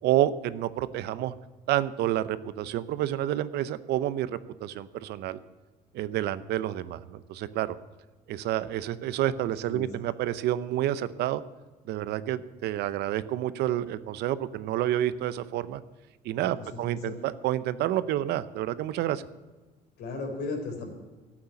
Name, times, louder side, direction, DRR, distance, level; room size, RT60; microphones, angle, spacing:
voice 1, 0.0-1.3 1.7-5.4 5.9-7.8 8.3-11.4 11.9-15.8 16.2-19.2, right 12 dB, 80° right, 15 dB, 0.7 m, -29 dB
voice 2, 16.4-17.2 20.0-20.9, left 3 dB, 75° left, 3 dB, 4.1 m, -36 dB
11.5 x 8.6 x 9.7 m, 1.3 s
cardioid pair, 110°, 17 cm